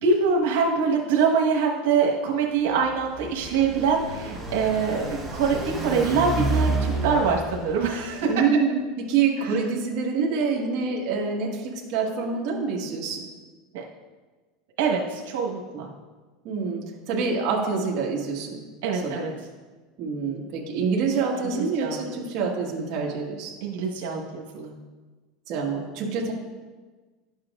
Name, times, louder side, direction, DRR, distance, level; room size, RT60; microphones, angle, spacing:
voice 1, 0.0-8.3 9.4-9.5 13.7-13.8 14.8-15.9 18.8-19.3 21.5-22.0 23.6-24.7, right 5 dB, 90° right, -2 dB, 1.3 m, -24 dB
Car passing by, 2.7-8.2, right 2 dB, 5° right, 1.4 m, -30 dB
voice 2, 8.3-13.2 16.4-18.6 18.9-19.2 20.0-23.5 25.5-26.3, right 5 dB, 45° right, -3 dB, 1.6 m, -26 dB
11.5 x 7.3 x 2.5 m, 1.3 s
supercardioid pair, 175°, 0 cm